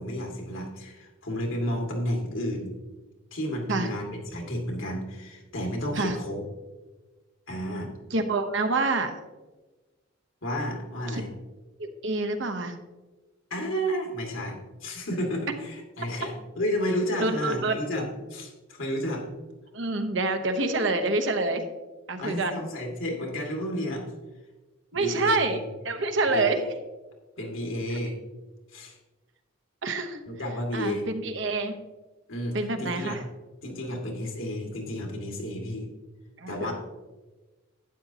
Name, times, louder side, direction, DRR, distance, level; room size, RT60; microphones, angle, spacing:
voice 1, 0.0-2.7 3.3-6.4 7.5-7.9 10.4-11.3 13.5-19.3 22.2-24.1 24.9-25.6 26.3-26.5 27.4-28.2 28.7-29.0 30.3-31.1 32.3-33.2 33.6-35.9 36.5-36.7, equal, 70° left, 0 dB, 2.2 m, -31 dB
voice 2, 8.1-9.2 11.1-11.3 11.8-12.8 17.2-17.8 19.7-21.6 22.1-22.6 24.9-25.6 25.8-26.7 29.8-30.2 30.7-31.7 32.5-33.2 36.4-36.7, right 2 dB, 60° right, 7 dB, 0.9 m, -27 dB
12.0 x 9.3 x 2.9 m, 1.2 s
head